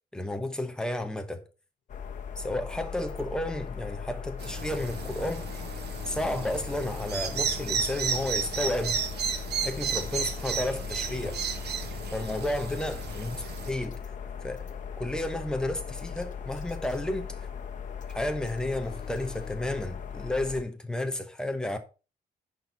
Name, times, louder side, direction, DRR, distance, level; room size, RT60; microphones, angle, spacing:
voice 1, 0.1-1.4 2.4-5.5 6.1-9.0 9.6-11.4 12.1-14.0 14.4-14.7 15.0-17.5 18.1-21.8, left 1 dB, 5° left, 1.0 m, -32 dB
sound 1, 1.9-20.6, left 7 dB, 50° left, 1.2 m, -38 dB
sound 2, 4.4-7.5 18.8-19.6, left 8 dB, 70° left, 1.4 m, -48 dB
sound 3, 4.4-13.7, right 7 dB, 85° right, 1.3 m, -33 dB
10.5 x 4.6 x 5.1 m
wide cardioid pair, 165°, 17 cm